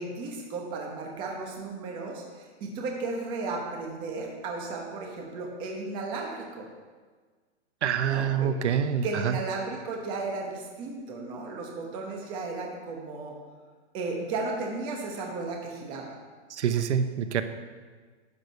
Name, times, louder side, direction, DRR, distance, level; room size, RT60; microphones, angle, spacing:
voice 1, 0.0-6.7 8.0-8.5 9.0-13.3 13.9-16.2, right 3 dB, 15° right, 0 dB, 0.9 m, -34 dB
voice 2, 7.8-9.4 16.5-17.4, right 8 dB, 90° right, 10 dB, 0.9 m, -26 dB
11.0 x 4.9 x 6.8 m, 1.5 s
hypercardioid pair, 175°, 34 cm